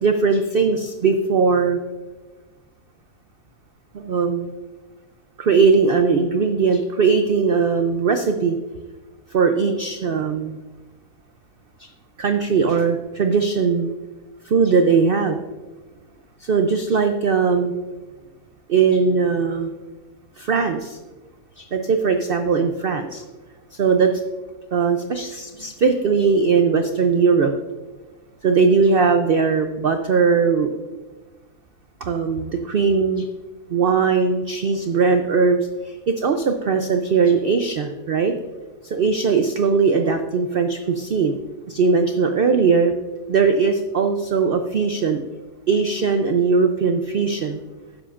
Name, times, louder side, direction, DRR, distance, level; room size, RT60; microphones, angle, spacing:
voice 1, 0.0-1.8 3.9-4.5 5.4-8.6 9.3-10.6 11.8-11.9 12.2-13.9 14.4-15.4 16.4-17.7 18.7-19.7 20.4-21.0 21.6-23.2 23.7-24.1 24.7-27.5 28.4-30.7 32.0-33.3 33.7-35.6 35.8-38.3 38.8-41.3 41.7-42.9 43.3-45.2 45.7-47.6, right 5 dB, 85° right, 6 dB, 0.5 m, -19 dB
12.5 x 10.0 x 2.5 m, 1.3 s
omnidirectional pair, 1.7 m